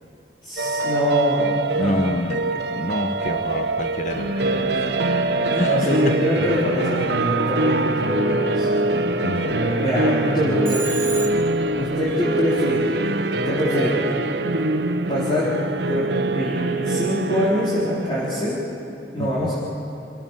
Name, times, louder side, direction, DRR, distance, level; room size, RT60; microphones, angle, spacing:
voice 1, 0.4-1.9 5.3-8.7 9.6-10.9 11.7-13.1 13.4-14.1 15.1-15.5 15.9-18.6 19.1-19.5, equal, 30° left, -8 dB, 4.6 m, -24 dB
sound 1, 0.6-18.7, right 2 dB, 70° right, 1.0 m, -24 dB
voice 2, 1.8-4.8 5.1-5.2 5.5-6.2 9.2-9.6 19.2-19.5, left 1 dB, 45° left, 7 dB, 1.4 m, -28 dB
sound 2, 4.1-16.8, equal, 35° right, 3.3 m, -35 dB
Telephone, 10.7-11.7, right 4 dB, 15° right, 3.2 m, -31 dB
29.5 x 17.5 x 7.7 m, 2.9 s
head